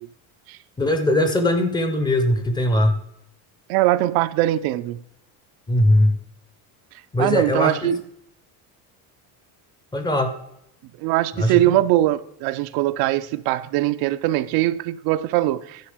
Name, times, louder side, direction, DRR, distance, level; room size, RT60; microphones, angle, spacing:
voice 1, 0.8-3.0 5.7-6.2 7.1-7.9 9.9-10.3 11.4-11.6, left 1 dB, 10° left, 0.6 m, -20 dB
voice 2, 3.7-5.0 7.2-8.0 11.0-15.9, right 15 dB, 65° right, 0.5 m, -21 dB
10.5 x 5.1 x 4.9 m
cardioid pair, 180°, 40 cm